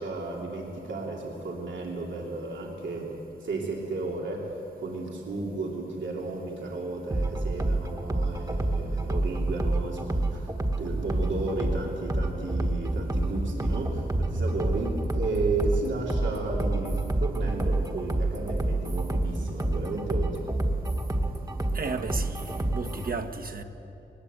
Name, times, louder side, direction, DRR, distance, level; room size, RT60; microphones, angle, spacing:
voice 1, 0.0-3.1 3.4-4.6 4.8-10.5 10.8-20.5, right 3 dB, 85° right, -1 dB, 3.1 m, -33 dB
sound 1, 7.1-23.1, right 2 dB, 20° right, 1.5 m, -28 dB
voice 2, 21.7-23.6, right 4 dB, 50° right, 6 dB, 1.4 m, -34 dB
20.0 x 20.0 x 8.2 m, 2.9 s
wide cardioid pair, 105°, 19 cm